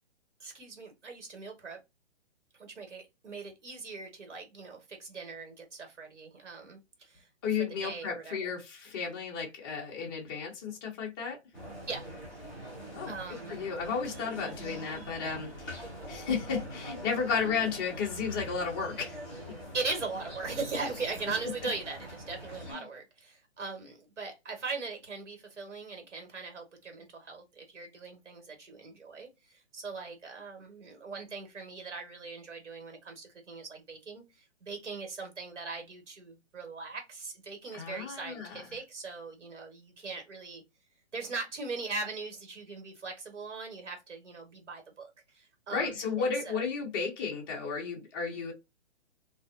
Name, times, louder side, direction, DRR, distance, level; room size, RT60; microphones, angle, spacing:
voice 1, 0.4-1.8 2.6-8.5 11.9-12.1 13.1-13.7 19.7-29.3 29.7-34.2 34.6-40.6 41.1-45.1 45.3-46.6, right 4 dB, 90° right, 1.5 m, -40 dB
voice 2, 7.4-11.4 12.9-19.2 22.7-22.8 37.7-38.6 45.7-48.5, left 5 dB, 20° left, 0.7 m, -33 dB
sound 1, 11.5-22.7, equal, 5° left, 1.0 m, -44 dB
2.5 x 2.4 x 2.4 m
hypercardioid pair, 150°, 35 cm